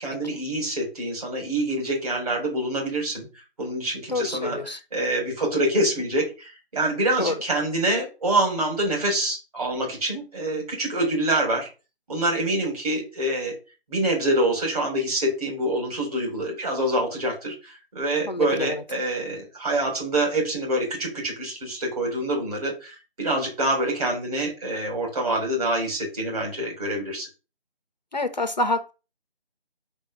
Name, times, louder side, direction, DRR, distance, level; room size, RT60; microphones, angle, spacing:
voice 1, 0.0-3.3 3.6-11.7 12.1-13.6 13.9-27.3, right 1 dB, 35° right, 0 dB, 3.5 m, -26 dB
voice 2, 4.1-4.8 7.2-7.4 18.3-18.8 28.1-28.9, left 2 dB, 40° left, 8 dB, 0.9 m, -27 dB
5.3 x 5.3 x 6.3 m, 0.32 s
figure-of-eight pair, 160°, 33 cm